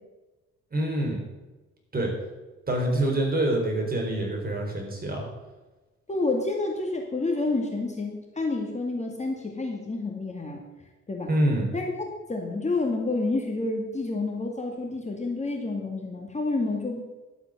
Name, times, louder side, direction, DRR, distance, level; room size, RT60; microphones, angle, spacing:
voice 1, 0.7-1.2 1.9-2.1 2.7-5.2 11.3-11.7, right 1 dB, 30° right, 1 dB, 4.2 m, -26 dB
voice 2, 6.1-10.6 11.1-11.3 11.7-11.9 12.3-17.0, left 3 dB, 25° left, 1 dB, 2.1 m, -29 dB
12.0 x 8.0 x 6.6 m, 1.1 s
cardioid pair, 90°, 30 cm